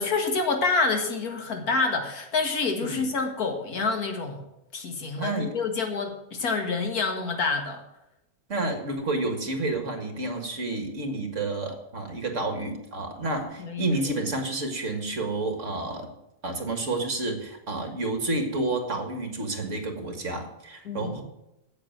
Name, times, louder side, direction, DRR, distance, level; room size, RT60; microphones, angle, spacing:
voice 1, 0.0-4.4 4.7-7.8 13.6-13.9 20.9-21.1, left 4 dB, 75° left, 4 dB, 2.1 m, -27 dB
voice 2, 5.2-5.6 8.5-16.1 16.4-21.2, right 2 dB, 55° right, 5 dB, 2.0 m, -30 dB
8.3 x 8.0 x 9.0 m, 0.88 s
omnidirectional pair, 1.6 m